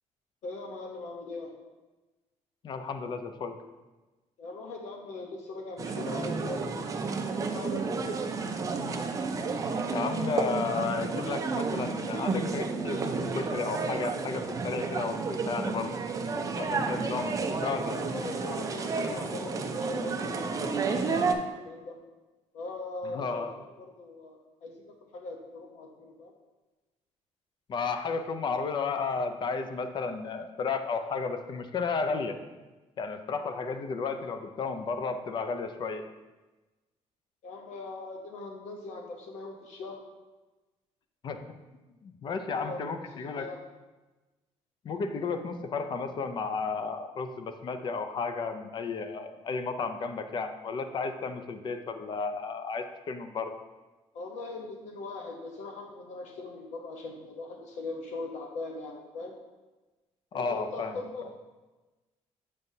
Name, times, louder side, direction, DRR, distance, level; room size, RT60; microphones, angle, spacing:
voice 1, 0.4-1.5 4.4-6.8 7.3-8.2 17.0-17.2 17.9-22.0 22.5-26.3 37.4-40.0 42.5-42.8 43.1-43.6 54.1-59.3 60.3-61.2, left 3 dB, 80° left, 2 dB, 0.9 m, -40 dB
voice 2, 2.6-3.6 9.9-16.0 16.6-18.0 23.0-23.5 27.7-32.4 33.0-36.0 41.2-41.5 42.0-43.5 44.8-53.5 60.3-61.0, left 4 dB, 40° left, 8 dB, 0.4 m, -33 dB
sound 1, 5.8-21.4, right 4 dB, 30° right, 0.4 m, -31 dB
7.7 x 5.3 x 2.7 m, 1.2 s
cardioid pair, 165°, 12 cm